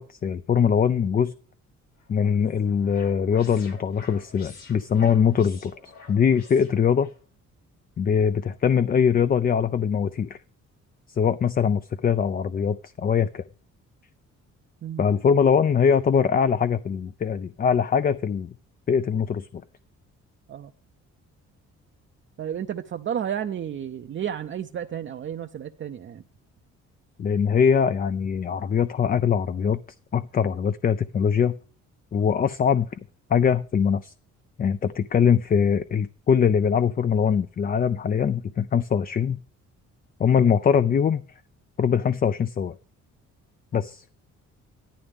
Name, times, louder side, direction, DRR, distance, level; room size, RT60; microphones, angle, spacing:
voice 1, 0.0-1.3 2.1-7.1 8.0-10.4 11.1-13.4 15.0-18.5 18.9-19.6 27.2-29.8 30.1-31.6 32.1-32.9 33.3-34.1 34.6-39.4 40.2-41.2 41.8-42.8 43.7-44.0, left 7 dB, 30° left, 0.4 m, -22 dB
sound 1, 2.0-7.2, left 4 dB, 85° left, 4.5 m, -49 dB
voice 2, 22.4-26.2, right 9 dB, 40° right, 0.6 m, -32 dB
13.0 x 11.5 x 3.5 m
cardioid pair, 90°, 30 cm